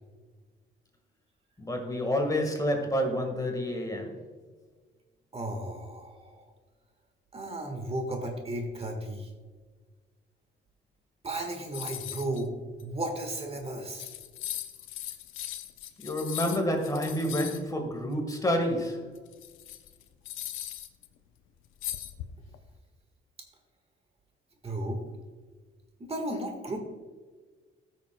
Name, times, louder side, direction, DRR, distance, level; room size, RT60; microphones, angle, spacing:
voice 1, 1.6-4.1 16.0-19.1, equal, 20° left, 3 dB, 1.5 m, -29 dB
voice 2, 5.3-6.5 7.3-9.3 11.2-12.5 12.8-14.1 24.6-25.0 26.0-26.8, right 1 dB, 30° right, 3 dB, 1.5 m, -34 dB
sound 1, 11.7-12.4 12.8-12.9 13.6-13.7 13.9-17.6 19.1-21.1 21.8-22.6, left 13 dB, 90° left, 0.6 m, -39 dB
13.5 x 6.4 x 2.2 m, 1.4 s
cardioid pair, 90°, 20 cm